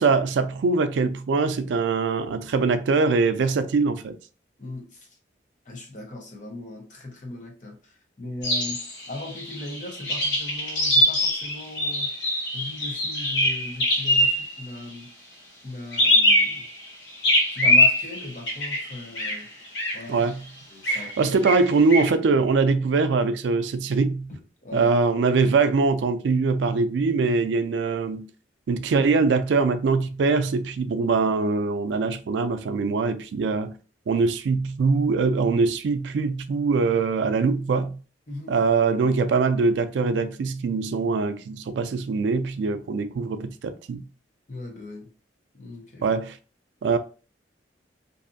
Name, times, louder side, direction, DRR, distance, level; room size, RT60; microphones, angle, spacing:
voice 1, 0.0-4.2 20.1-20.4 20.9-24.3 24.7-28.3 28.7-33.7 34.1-38.0 38.5-44.1 46.0-46.4 46.8-47.0, right 4 dB, 85° right, 0.3 m, -23 dB
voice 2, 5.7-7.8 8.2-8.8 9.1-12.1 12.5-15.1 15.6-16.6 17.5-19.5 19.9-20.2 20.7-21.4 24.3-24.9 38.3-38.6 44.5-45.1 45.6-46.1, left 2 dB, 45° left, 0.8 m, -38 dB
sound 1, 8.4-14.6 15.9-16.9 17.2-19.4 19.7-20.0 20.8-21.1 21.4-22.1, left 1 dB, 75° left, 1.0 m, -22 dB
2.6 x 2.4 x 2.5 m
head